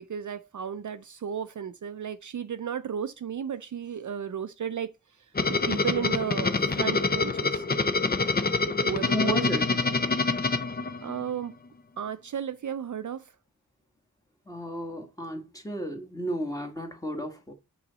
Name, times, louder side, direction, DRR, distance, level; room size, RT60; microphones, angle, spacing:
voice 1, 0.0-4.9 5.2-7.9 8.6-9.5 9.8-10.0 11.0-11.5 12.0-13.3, right 8 dB, 60° right, 0.4 m, -34 dB
sound 1, 5.3-11.4, left 3 dB, 25° left, 0.5 m, -26 dB
voice 2, 9.1-9.7 14.5-17.5, equal, 10° left, 1.4 m, -32 dB
6.0 x 3.9 x 3.9 m
wide cardioid pair, 55°, 35 cm